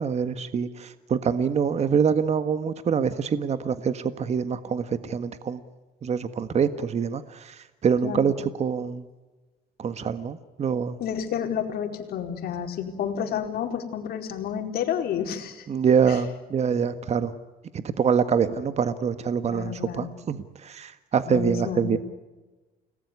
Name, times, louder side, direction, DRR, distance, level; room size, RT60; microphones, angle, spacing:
voice 1, 0.0-5.6 6.0-9.0 9.8-11.0 15.7-17.3 17.7-22.0, right 6 dB, 40° right, 11 dB, 1.6 m, -25 dB
voice 2, 8.0-8.4 11.0-15.7 16.1-16.2 19.5-20.1 21.3-22.0, left 8 dB, 65° left, 5 dB, 4.5 m, -30 dB
30.0 x 19.5 x 9.8 m, 1.2 s
cardioid pair, 110°, 17 cm